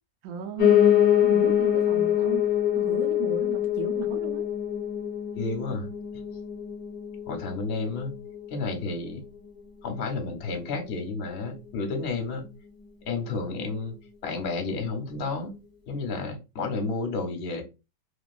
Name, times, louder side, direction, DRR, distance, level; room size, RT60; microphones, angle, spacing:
voice 1, 0.2-0.8 1.2-4.5, right 7 dB, 65° right, 0.9 m, -36 dB
Piano, 0.6-9.7 10.1-11.3 11.5-11.6 11.9-12.0 12.2-12.3 12.8-12.9, left 10 dB, 85° left, 0.4 m, -25 dB
voice 2, 5.4-5.9 7.3-8.1 8.5-9.2 9.8-12.4 13.1-13.9 14.2-15.5 15.9-17.6, left 3 dB, 50° left, 0.8 m, -31 dB
2.9 x 2.3 x 2.4 m
omnidirectional pair, 1.9 m